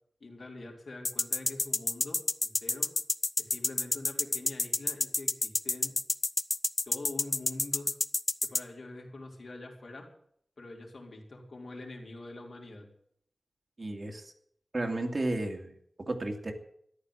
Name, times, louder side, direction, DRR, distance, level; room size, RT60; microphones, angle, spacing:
voice 1, 0.2-2.9 3.4-5.9 6.9-8.0 8.5-10.1 10.6-12.9, left 2 dB, 70° left, 0 dB, 3.9 m, -45 dB
sound 1, 1.0-8.6, left 2 dB, 40° left, 0.6 m, -28 dB
voice 2, 13.8-14.3 14.7-16.5, right 2 dB, 45° right, 4 dB, 2.3 m, -33 dB
14.0 x 11.0 x 8.0 m, 0.67 s
wide cardioid pair, 90°, 0 cm